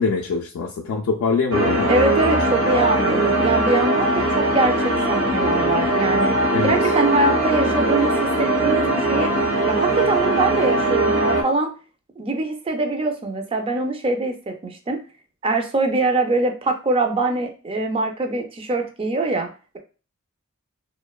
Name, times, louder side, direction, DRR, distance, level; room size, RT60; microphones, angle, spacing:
voice 1, 0.0-1.9 6.5-6.8, left 4 dB, 80° left, 0 dB, 0.3 m, -23 dB
sound 1, 1.5-11.4, right 2 dB, 60° right, 0.7 m, -20 dB
voice 2, 1.9-6.3 6.6-9.3 9.7-11.7 12.2-15.0 15.4-19.5, right 2 dB, 25° right, 5 dB, 0.3 m, -23 dB
2.8 x 2.1 x 2.2 m, 0.35 s
head